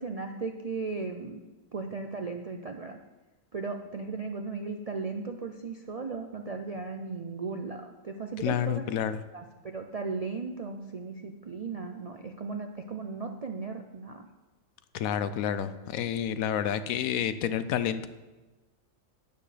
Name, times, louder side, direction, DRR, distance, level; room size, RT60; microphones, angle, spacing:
voice 1, 0.0-1.4 1.7-3.0 3.5-8.9 9.3-14.3, right 4 dB, 55° right, 4 dB, 0.4 m, -36 dB
voice 2, 8.4-9.2 14.9-18.1, left 9 dB, 85° left, 12 dB, 1.0 m, -29 dB
12.0 x 9.9 x 3.3 m, 1.2 s
omnidirectional pair, 1.4 m